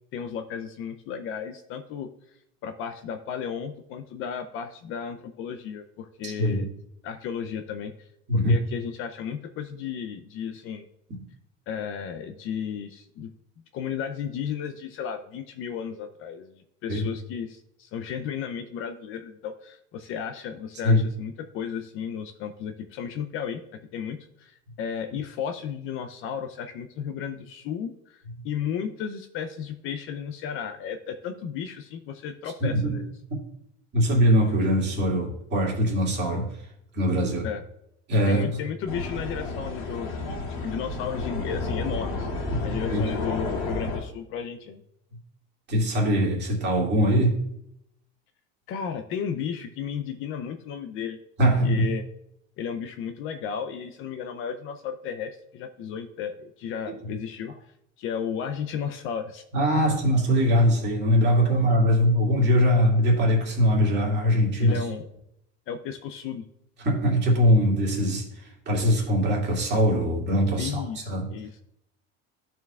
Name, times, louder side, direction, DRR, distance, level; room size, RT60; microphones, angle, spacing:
voice 1, 0.1-2.1 2.6-6.7 7.0-8.1 8.5-10.8 11.7-13.3 13.7-23.6 23.9-33.1 37.4-37.6 38.3-42.3 42.6-44.8 48.7-51.2 51.6-52.1 52.6-57.5 58.0-59.4 64.6-65.1 65.7-66.4 70.6-71.6, left 7 dB, 45° left, 8 dB, 0.5 m, -34 dB
voice 2, 6.2-6.7 8.3-8.5 16.9-17.0 20.8-21.0 32.6-33.0 33.9-36.5 36.9-37.5 38.1-38.5 42.5-42.6 42.9-43.0 45.7-47.4 51.4-51.9 56.9-57.0 59.5-64.8 66.8-71.3, equal, 35° right, -1 dB, 2.1 m, -22 dB
sound 1, 38.9-44.0, left 3 dB, 75° left, 2.0 m, -31 dB
13.0 x 4.5 x 2.3 m, 0.77 s
cardioid pair, 155°, 31 cm